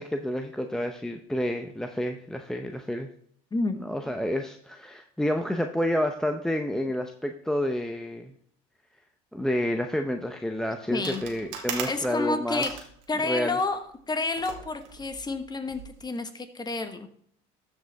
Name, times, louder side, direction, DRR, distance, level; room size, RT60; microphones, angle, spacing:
voice 1, 0.0-3.1 3.8-8.3 9.3-12.6 13.2-13.6, equal, 5° left, 5 dB, 0.6 m, -29 dB
voice 2, 10.9-11.2 11.9-12.8 13.1-17.1, left 3 dB, 20° left, 7 dB, 1.3 m, -30 dB
sound 1, 11.0-13.7 14.3-16.0, right 6 dB, 80° right, 1.8 m, -39 dB
13.0 x 5.1 x 3.5 m, 0.63 s
supercardioid pair, 85°, 19 cm